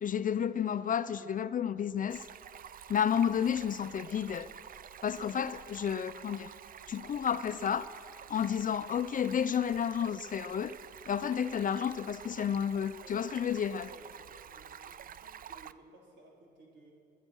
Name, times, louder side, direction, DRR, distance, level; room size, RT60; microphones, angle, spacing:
voice 1, 0.0-2.2 2.9-4.5 5.0-6.5 6.9-7.9 8.3-10.7 11.1-13.9, left 8 dB, 45° left, 0.5 m, -31 dB
Stream, 2.1-15.7, right 8 dB, 45° right, 0.5 m, -49 dB
voice 2, 13.0-13.3 13.8-16.9, right 2 dB, 70° right, 4.5 m, -58 dB
21.0 x 11.0 x 6.3 m
cardioid pair, 90°, 20 cm